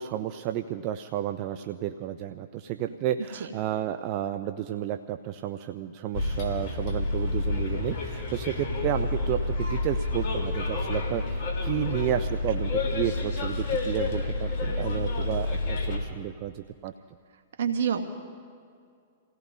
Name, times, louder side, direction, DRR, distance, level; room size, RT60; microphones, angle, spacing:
voice 1, 0.0-16.9, right 11 dB, 45° right, 8 dB, 0.5 m, -32 dB
Bus, 6.1-16.0, left 2 dB, 55° left, 3.4 m, -29 dB
voice 2, 17.6-18.0, right 7 dB, 75° right, 6 dB, 1.4 m, -27 dB
29.0 x 17.0 x 2.7 m, 2.2 s
hypercardioid pair, 115°, 0 cm